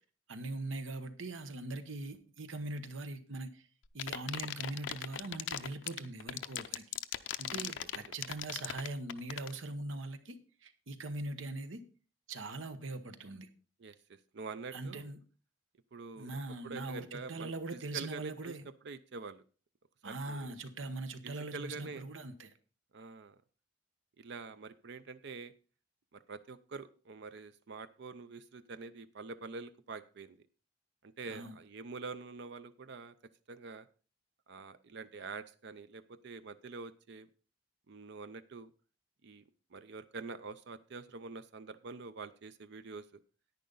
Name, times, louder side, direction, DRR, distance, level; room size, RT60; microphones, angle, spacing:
voice 1, 0.3-3.7 3.9-7.0 7.4-11.8 12.3-13.5 14.7-15.2 16.2-18.6 20.0-22.5 31.3-31.6, right 2 dB, 90° right, 1.1 m, -41 dB
sound 1, 3.9-9.6, left 10 dB, 65° left, 0.6 m, -37 dB
voice 2, 7.5-7.9 13.8-15.1 15.9-16.3 16.6-18.6 18.8-19.4 20.0-20.6 21.2-22.0 22.9-23.4 24.2-25.5 26.1-30.4 31.0-33.1 33.5-33.9 34.5-37.3 37.9-38.7 39.2-39.4 39.7-43.2, right 4 dB, 60° right, 0.5 m, -46 dB
10.5 x 9.5 x 3.9 m
head